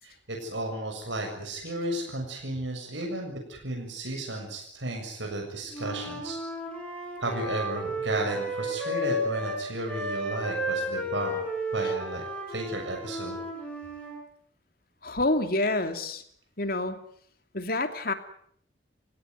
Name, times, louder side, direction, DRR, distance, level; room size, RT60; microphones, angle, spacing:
voice 1, 0.0-6.4 7.2-11.4 11.7-12.2 12.5-13.4, right 1 dB, 75° right, 2 dB, 7.1 m, -33 dB
Wind instrument woodwind instrument, 5.7-9.6 9.9-14.2, equal, 5° left, 7.1 m, -33 dB
voice 2, 15.0-16.2 16.6-17.0 17.5-18.1, left 2 dB, 50° left, 8 dB, 2.8 m, -27 dB
30.0 x 17.5 x 9.6 m, 0.66 s
head